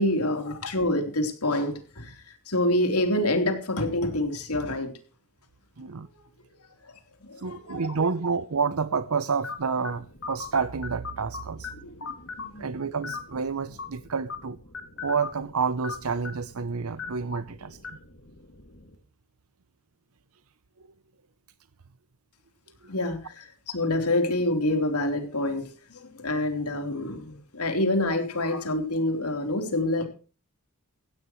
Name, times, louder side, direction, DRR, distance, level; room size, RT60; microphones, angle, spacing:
voice 1, 0.0-4.9 6.8-8.0 12.0-12.7 22.9-30.1, left 1 dB, 85° left, 3.8 m, -27 dB
voice 2, 5.8-6.1 7.4-11.7 12.6-14.6 15.0-17.8, right 5 dB, 70° right, 0.7 m, -29 dB
sound 1, 9.4-18.9, left 4 dB, 55° left, 2.6 m, -41 dB
17.0 x 16.0 x 3.2 m
head